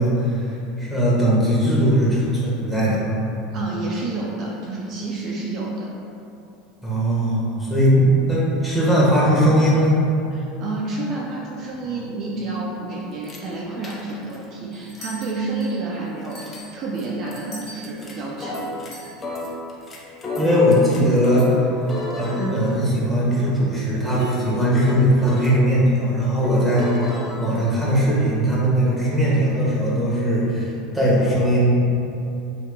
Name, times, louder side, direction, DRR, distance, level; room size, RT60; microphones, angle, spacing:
voice 1, 0.0-3.1 6.8-10.0 17.5-17.9 20.4-21.6 22.2-27.1 27.4-31.7, equal, ahead, -7 dB, 1.1 m, -19 dB
voice 2, 3.5-5.9 10.3-18.7, right 3 dB, 45° right, -3 dB, 0.4 m, -29 dB
sound 1, 13.2-13.4 13.8-14.4 14.9-15.0 16.2-16.6 17.0-17.1 17.3-17.4 17.8-18.9 19.2-21.6 21.9-25.6 26.4-28.2, left 1 dB, 25° left, 0.6 m, -31 dB
sound 2, 14.7-15.9 16.3-18.3 18.9-19.1, equal, 45° left, 1.0 m, -41 dB
2.9 x 2.5 x 3.6 m, 2.8 s
hypercardioid pair, 80°, 0 cm